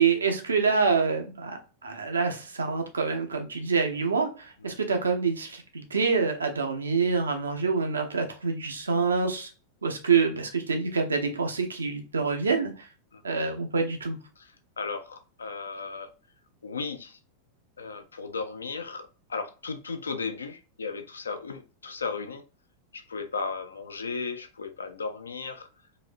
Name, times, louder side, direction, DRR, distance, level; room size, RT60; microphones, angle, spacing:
voice 1, 0.0-9.5 9.8-12.9 13.2-14.2, right 5 dB, 75° right, 5 dB, 0.7 m, -26 dB
voice 2, 14.4-16.1 16.6-17.2 17.8-22.4 22.9-25.7, left 4 dB, 75° left, 8 dB, 0.5 m, -35 dB
4.1 x 2.7 x 2.5 m, 0.34 s
figure-of-eight pair, 90°, 0 cm